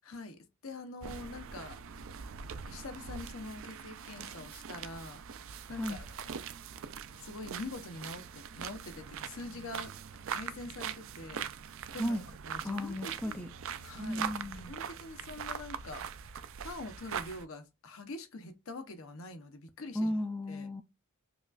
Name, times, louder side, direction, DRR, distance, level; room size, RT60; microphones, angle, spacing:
voice 1, 0.0-1.8 2.7-5.2 5.7-6.4 7.1-9.9 10.3-11.5 11.9-12.2 12.5-13.4 13.8-14.3 14.6-16.0 16.6-20.1 20.5-20.7, left 2 dB, 65° left, 0.8 m, -44 dB
sound 1, 1.0-17.4, right 7 dB, 60° right, 0.4 m, -42 dB
voice 2, 11.9-12.2 12.6-13.5 14.0-14.7 19.9-20.8, left 1 dB, 5° left, 0.4 m, -34 dB
5.0 x 2.3 x 2.4 m
head